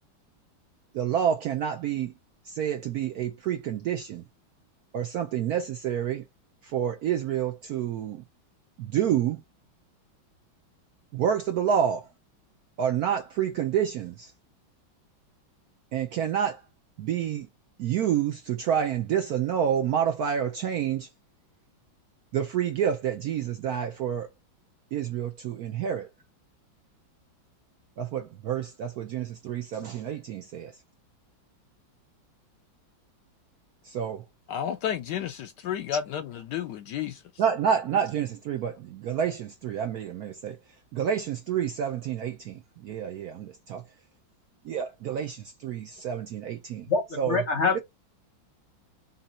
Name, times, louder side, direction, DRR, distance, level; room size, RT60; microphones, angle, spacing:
voice 1, 0.9-2.1 2.5-4.2 4.9-6.2 6.6-8.2 8.8-9.4 11.1-12.0 12.8-14.3 15.9-16.6 17.0-17.5 17.8-21.1 22.3-24.3 24.9-26.1 28.0-30.7 33.8-34.2 37.4-40.6 40.9-43.8 44.6-46.9 47.2-47.4, right 9 dB, 70° right, 0.9 m, -28 dB
voice 2, 34.5-37.2, left 9 dB, 75° left, 1.0 m, -31 dB
voice 3, 46.9-47.8, left 4 dB, 50° left, 0.8 m, -25 dB
4.0 x 2.7 x 4.1 m
omnidirectional pair, 2.1 m